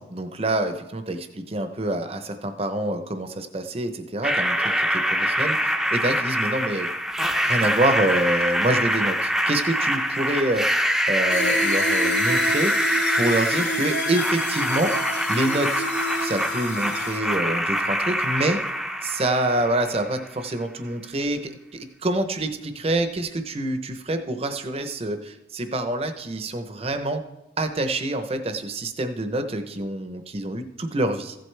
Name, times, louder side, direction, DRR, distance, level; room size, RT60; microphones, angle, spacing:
voice 1, 0.1-6.9 7.4-10.6 11.1-12.7 13.2-14.9 15.3-15.9 16.2-18.6 19.0-27.2 27.6-31.4, right 1 dB, 35° right, 8 dB, 0.7 m, -26 dB
sound 1, 4.2-20.2, equal, ahead, 0.6 m, -24 dB
sound 2, 11.3-17.2, left 1 dB, 75° left, 1.0 m, -29 dB
15.0 x 7.9 x 3.3 m, 0.96 s
head